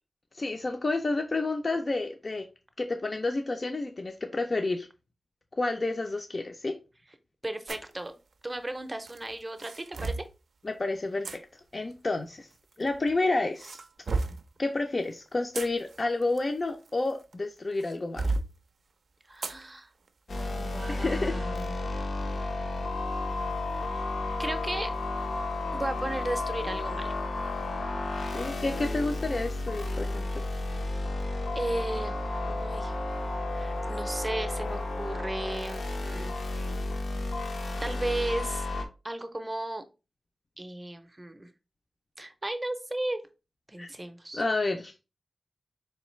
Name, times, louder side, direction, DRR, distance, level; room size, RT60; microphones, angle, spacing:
voice 1, 0.3-2.4 2.8-4.9 5.6-6.7 10.6-11.3 11.7-12.5 12.8-13.8 14.1-14.2 14.6-18.4 20.9-21.3 28.3-30.4 43.8-43.9 44.3-45.0, left 2 dB, 40° left, 4 dB, 0.4 m, -30 dB
voice 2, 7.4-8.1 8.4-10.2 19.3-19.9 20.3-21.8 24.4-24.9 25.7-27.1 31.5-32.2 32.4-32.9 33.4-36.3 37.8-38.7 39.0-39.8 40.6-41.5 42.2-43.2 43.7-44.4, right 1 dB, 20° right, 8 dB, 0.5 m, -35 dB
sound 1, 7.7-7.9 9.1-10.3 11.2-11.4 12.5-13.1 13.6-14.5 15.3-17.3 17.8-18.5 19.4-19.6 20.1-20.2 20.8-21.0, right 3 dB, 90° right, 0.4 m, -33 dB
sound 2, 20.3-38.8, left 2 dB, 80° left, 0.6 m, -32 dB
3.9 x 3.2 x 3.0 m, 0.30 s
wide cardioid pair, 125°, 0 cm